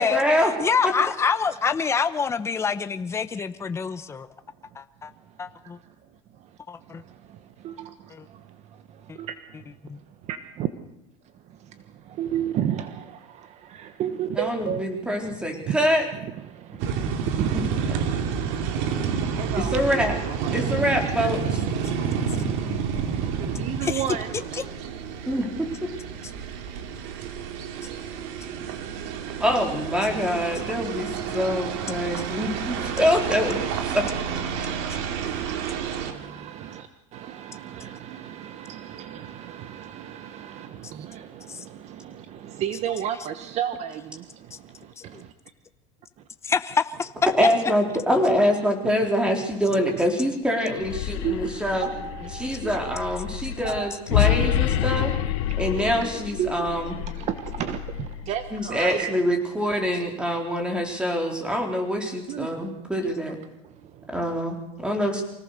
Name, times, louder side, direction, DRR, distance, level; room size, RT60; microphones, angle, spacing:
voice 1, 0.0-0.5 0.8-0.9 14.4-16.1 17.5-17.6 19.6-20.2 20.5-21.6 25.3-25.7 29.4-33.6 33.9-34.1 47.3-51.9 52.4-55.1 55.6-57.0 58.5-63.4 64.1-64.6 64.8-65.2, equal, 5° right, 3 dB, 4.3 m, -25 dB
voice 2, 0.6-4.3 4.7-5.1 5.4-5.8 6.7-7.0 8.1-8.2 9.1-9.2 9.8-10.0 23.8-24.0 32.1-32.2 41.5-41.6 45.0-45.2 46.4-47.1 51.1-51.3 52.4-52.5 64.5-64.6, left 6 dB, 15° left, 10 dB, 1.0 m, -26 dB
voice 3, 5.6-5.9 6.3-6.6 6.9-9.7 10.2-10.7 11.5-14.9 15.2-15.8 16.1-19.6 21.0-21.1 22.3-24.3 25.1-25.2 26.2-29.4 31.4-31.5 32.5-32.8 33.8-34.9 35.2-45.3 48.8-49.1 49.7-49.8 50.7-50.8 51.2-53.0 53.6-54.7 55.0-55.1 55.4-55.8 56.4-56.7 57.1-59.1 62.3-62.9 63.6-64.3, right 10 dB, 45° right, 10 dB, 1.3 m, -35 dB
sound 1, 16.8-36.1, right 7 dB, 70° right, 2.8 m, -29 dB
sound 2, 50.7-58.8, left 12 dB, 85° left, 1.7 m, -28 dB
25.0 x 17.5 x 6.8 m, 0.86 s
supercardioid pair, 135°, 16 cm